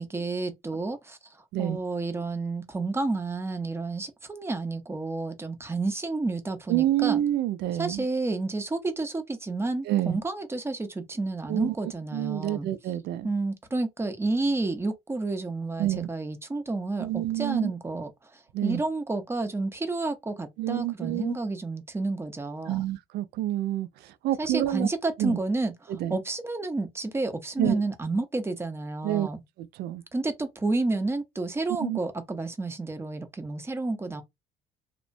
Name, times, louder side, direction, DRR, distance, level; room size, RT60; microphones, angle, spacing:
voice 1, 0.0-7.2 7.8-12.7 13.2-22.9 24.4-29.4 30.1-34.2, right 3 dB, 15° right, 0.6 m, -30 dB
voice 2, 6.7-8.0 9.9-10.2 11.5-13.3 15.8-16.1 17.0-17.7 18.5-18.8 20.6-21.4 22.7-24.9 25.2-25.4 25.9-26.2 27.6-27.8 29.0-29.3 29.6-30.0 31.8-32.0, right 13 dB, 75° right, 0.4 m, -28 dB
2.9 x 2.1 x 2.5 m
cardioid pair, 110°, 17 cm